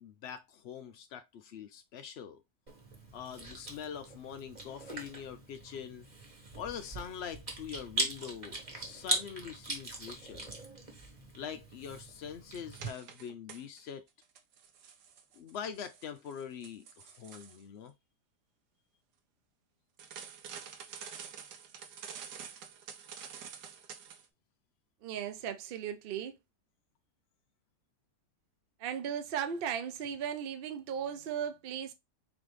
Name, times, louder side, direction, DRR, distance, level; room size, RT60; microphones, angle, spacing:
voice 1, 0.0-2.4 3.1-6.1 6.6-10.5 11.4-14.0 15.4-17.9, left 8 dB, 90° left, 0.5 m, -44 dB
Chewing mastication, 2.7-12.9, right 2 dB, 25° right, 1.1 m, -40 dB
sound 1, 12.7-13.9 14.2-17.6 20.0-24.2, right 7 dB, 85° right, 1.3 m, -48 dB
voice 2, 25.0-26.4 28.8-31.9, right 8 dB, 70° right, 0.5 m, -36 dB
4.0 x 3.3 x 3.1 m
omnidirectional pair, 1.7 m